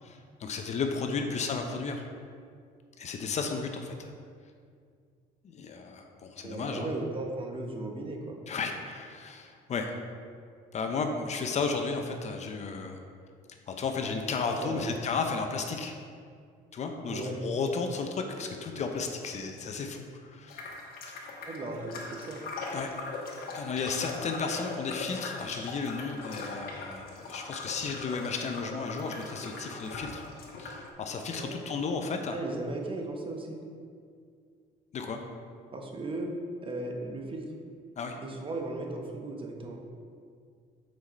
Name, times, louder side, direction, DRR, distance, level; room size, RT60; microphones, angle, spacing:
voice 1, 0.0-2.0 3.0-4.1 5.4-6.9 8.5-9.9 10.7-13.0 13.7-15.9 16.7-20.6 22.7-22.9 23.5-30.3 30.6-32.4 34.9-35.2 38.0-38.2, left 4 dB, 45° left, 4 dB, 0.6 m, -33 dB
voice 2, 6.4-8.4 14.4-14.9 17.1-17.4 21.4-22.4 31.4-31.6 32.3-33.6 35.7-36.3 36.6-37.4 38.2-39.8, right 2 dB, 30° right, 2 dB, 0.9 m, -36 dB
sound 1, 20.5-30.9, left 3 dB, 65° left, 1.1 m, -40 dB
6.2 x 4.8 x 4.2 m, 2.2 s
cardioid pair, 110°, 17 cm